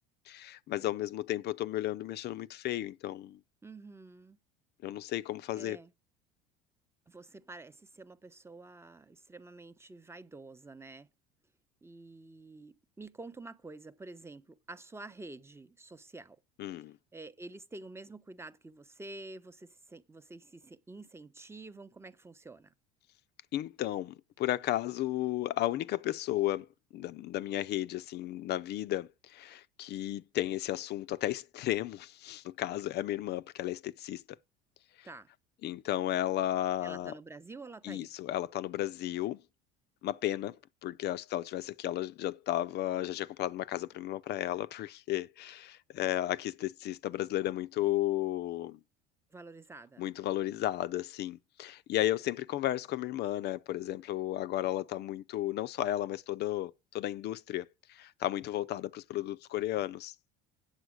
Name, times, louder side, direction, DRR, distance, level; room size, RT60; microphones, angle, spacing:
voice 1, 0.3-3.4 4.8-5.8 16.6-17.0 23.5-26.7 26.9-34.2 35.0-35.1 35.6-37.1 37.8-39.4 40.0-40.6 40.8-48.8 50.0-60.1, left 14 dB, 50° left, 0.6 m, -34 dB
voice 2, 3.6-4.4 5.5-5.9 7.1-11.1 11.8-16.4 17.1-22.7 35.0-35.3 36.8-38.1 49.3-50.1, right 2 dB, 10° right, 0.8 m, -48 dB
8.2 x 7.5 x 6.3 m
supercardioid pair, 95°, 21 cm